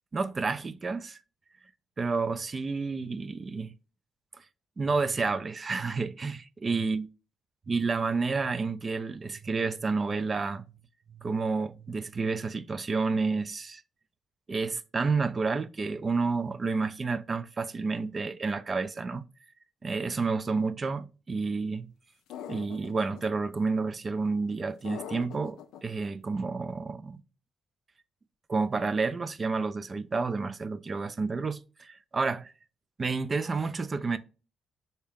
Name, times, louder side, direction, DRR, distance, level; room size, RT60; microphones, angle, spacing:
voice 1, 0.1-1.2 2.0-3.7 4.4-4.5 4.8-7.1 7.7-10.6 11.2-13.8 14.5-19.2 19.8-21.9 22.5-27.2 28.5-32.5 33.0-34.2, right 4 dB, 35° right, 0.3 m, -30 dB
sound 1, 22.3-23.2 24.8-25.8, left 9 dB, 90° left, 0.3 m, -41 dB
3.5 x 2.7 x 3.4 m
cardioid pair, 90°, 0 cm